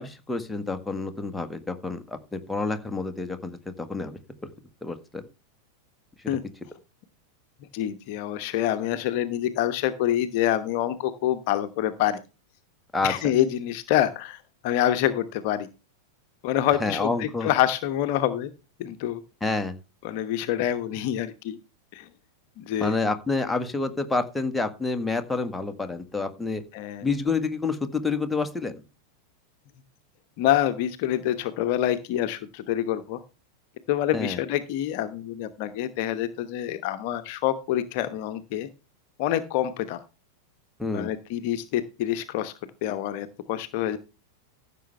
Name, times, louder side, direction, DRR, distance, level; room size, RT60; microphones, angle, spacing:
voice 1, 0.0-4.2 4.8-5.2 12.9-13.1 16.8-17.5 19.4-19.8 22.8-26.6 27.0-28.7 34.1-34.4 40.8-41.1, left 3 dB, 5° left, 7 dB, 1.7 m, -28 dB
voice 2, 7.7-12.2 13.0-15.7 16.4-18.5 18.8-19.2 20.0-21.6 21.9-22.1 22.6-23.0 26.7-27.1 30.4-33.2 33.9-38.7 39.2-40.0 40.9-42.5 42.8-44.0, left 12 dB, 45° left, 10 dB, 1.0 m, -26 dB
15.0 x 7.0 x 3.4 m, 0.29 s
figure-of-eight pair, 90°, 0 cm